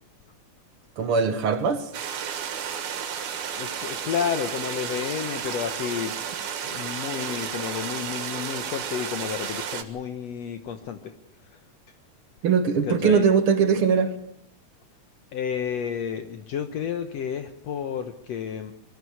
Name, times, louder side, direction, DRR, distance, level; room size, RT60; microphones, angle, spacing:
voice 1, 1.0-1.9 12.4-14.1, right 6 dB, 55° right, 1.9 m, -21 dB
sound 1, 1.9-9.8, right 8 dB, 80° right, 3.1 m, -32 dB
voice 2, 3.5-11.1 11.4-11.6 12.8-13.3 15.3-18.7, left 8 dB, 70° left, 2.0 m, -31 dB
23.0 x 14.5 x 8.4 m
omnidirectional pair, 3.4 m